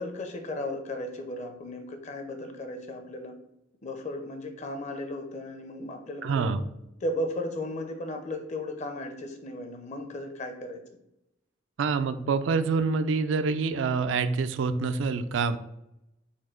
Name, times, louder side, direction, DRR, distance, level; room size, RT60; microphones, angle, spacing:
voice 1, 0.0-3.4 3.8-6.6 7.0-10.8, left 1 dB, 40° left, 6 dB, 0.6 m, -35 dB
voice 2, 6.2-6.6 11.8-15.6, right 4 dB, 75° right, 10 dB, 0.4 m, -26 dB
4.2 x 2.6 x 4.4 m, 0.84 s
head